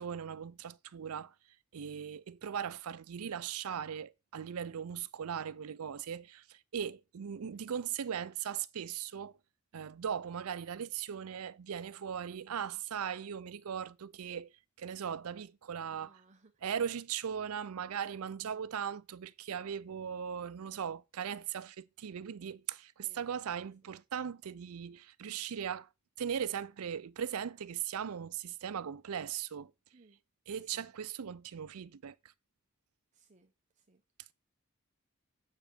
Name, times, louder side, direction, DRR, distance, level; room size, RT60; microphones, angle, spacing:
voice 1, 0.0-1.3 1.7-9.4 9.7-14.5 14.8-16.2 16.6-25.9 26.2-29.7 30.5-32.3 34.2-34.3, right 8 dB, 90° right, 0.5 m, -39 dB
voice 2, 15.9-16.6 23.0-23.9 29.9-30.2 30.5-30.9 33.1-34.0, right 3 dB, 35° right, 0.7 m, -65 dB
7.6 x 5.0 x 5.0 m
head